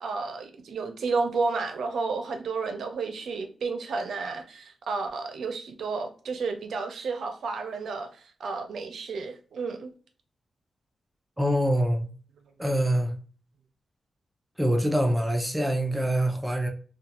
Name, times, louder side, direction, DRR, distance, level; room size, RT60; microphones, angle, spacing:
voice 1, 0.0-9.9, right 4 dB, 90° right, 0.5 m, -31 dB
voice 2, 11.4-12.1 12.6-13.1 14.6-16.7, right 1 dB, 10° right, 0.5 m, -25 dB
2.4 x 2.2 x 2.8 m
wide cardioid pair, 105°, 0 cm